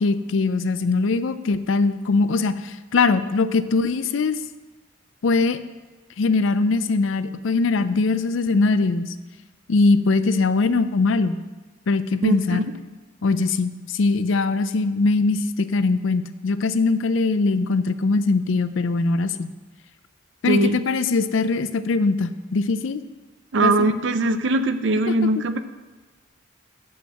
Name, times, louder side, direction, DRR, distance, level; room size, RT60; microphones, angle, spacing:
voice 1, 0.0-4.4 5.2-5.6 6.2-9.1 9.7-11.4 11.9-12.7 13.2-19.5 20.4-23.0 23.6-23.9 25.1-25.3, left 3 dB, 70° left, 12 dB, 0.5 m, -21 dB
voice 2, 12.2-12.7 20.5-20.8 23.5-25.6, right 2 dB, 60° right, 10 dB, 0.5 m, -21 dB
8.1 x 5.5 x 6.5 m, 1.3 s
head